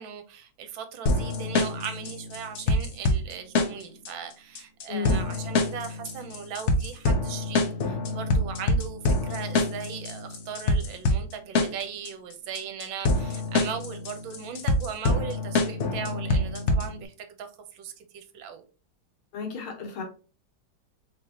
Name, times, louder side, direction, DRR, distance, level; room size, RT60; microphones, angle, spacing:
voice 1, 0.0-17.5 17.7-18.6, right 7 dB, 75° right, 1.4 m, -38 dB
sound 1, 1.1-17.0, left 2 dB, 70° left, 0.6 m, -26 dB
voice 2, 4.9-5.2 19.3-20.0, left 4 dB, 90° left, 2.1 m, -32 dB
4.1 x 3.5 x 2.8 m
omnidirectional pair, 2.2 m